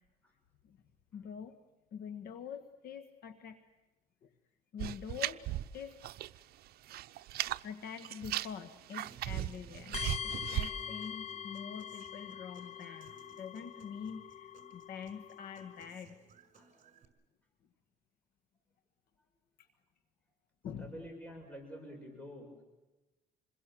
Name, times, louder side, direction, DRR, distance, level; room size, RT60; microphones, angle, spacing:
voice 1, 1.1-1.6 1.9-3.6 4.2-4.3 4.7-5.5 5.7-6.0 7.6-16.2 19.6-19.7 20.6-21.0, left 7 dB, 65° left, 9 dB, 1.6 m, -45 dB
sound 1, 4.8-6.4 6.7-7.6 8.0-10.7, right 14 dB, 65° right, 0.8 m, -37 dB
Human voice / Acoustic guitar, 9.1-17.0, right 5 dB, 40° right, 5.5 m, -60 dB
sound 2, 9.9-15.9, left 7 dB, 40° left, 0.9 m, -43 dB
voice 2, 20.8-22.5, equal, 10° left, 2 dB, 6.7 m, -48 dB
27.5 x 22.0 x 7.6 m, 1.1 s
cardioid pair, 110°, 17 cm